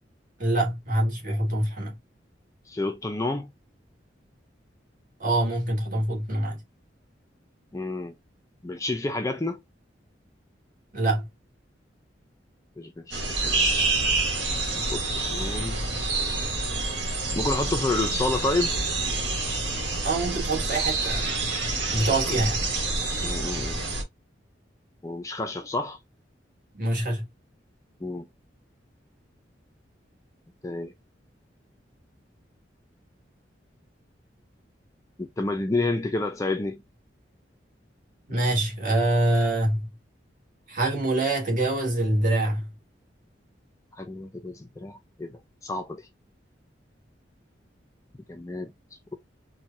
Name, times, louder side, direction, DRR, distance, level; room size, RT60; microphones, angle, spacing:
voice 1, 0.4-2.0 5.2-6.6 10.9-11.3 20.0-21.3 21.9-22.6 26.7-27.3 38.3-39.9 40.7-42.7, right 1 dB, 45° right, 1.4 m, -25 dB
voice 2, 2.7-3.5 7.7-8.1 8.6-9.6 12.8-13.6 14.9-15.8 17.3-18.8 22.2-22.3 23.2-23.8 25.0-26.0 28.0-28.3 30.6-30.9 35.2-36.8 44.0-46.1 48.3-48.7, left 2 dB, 15° left, 0.4 m, -30 dB
sound 1, 13.1-24.0, right 3 dB, 70° right, 1.4 m, -27 dB
4.4 x 2.2 x 2.6 m
head